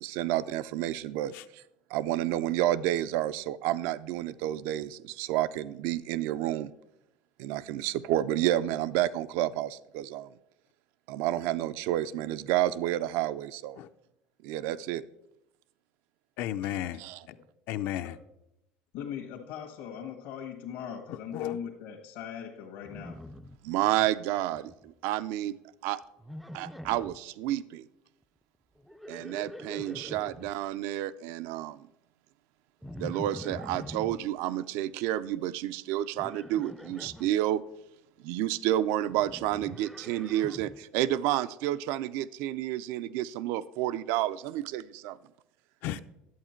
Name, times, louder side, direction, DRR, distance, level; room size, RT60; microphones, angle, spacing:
voice 1, 0.0-1.6 1.9-6.7 7.4-10.3 11.1-13.8 14.4-15.0 17.0-17.2 23.6-25.6 25.8-26.0 26.5-27.8 29.1-31.8 33.0-37.6 38.2-45.2, right 13 dB, 70° right, 15 dB, 0.4 m, -30 dB
voice 2, 16.4-17.0 17.7-18.2 21.1-21.6 45.8-46.0, left 12 dB, 55° left, 11 dB, 0.5 m, -33 dB
voice 3, 18.9-23.2, left 8 dB, 75° left, -1 dB, 1.5 m, -40 dB
Livestock farm animals working animals, 22.8-24.1 24.4-24.9 26.2-27.2 28.8-30.5 32.8-34.2 36.2-37.3 39.1-40.8, left 1 dB, ahead, 0.3 m, -44 dB
11.0 x 8.1 x 4.4 m, 0.85 s
cardioid pair, 160°, 4 cm